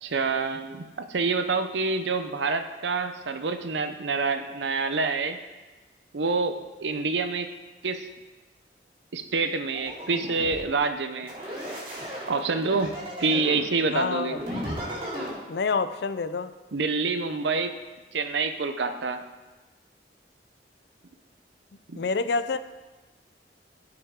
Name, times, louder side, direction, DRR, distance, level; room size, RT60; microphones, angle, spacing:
voice 1, 0.0-5.4 6.1-7.5 7.8-8.1 9.1-11.3 12.3-14.4 16.7-17.7 18.1-19.2 21.9-22.0, right 4 dB, 85° right, 8 dB, 0.7 m, -27 dB
sound 1, 9.7-10.6 11.3-13.7 14.3-15.3, equal, 30° right, 2.6 m, -35 dB
voice 2, 13.9-14.4 15.5-16.5 21.9-22.6, left 4 dB, 65° left, 13 dB, 0.4 m, -27 dB
14.5 x 5.8 x 3.6 m, 1.2 s
head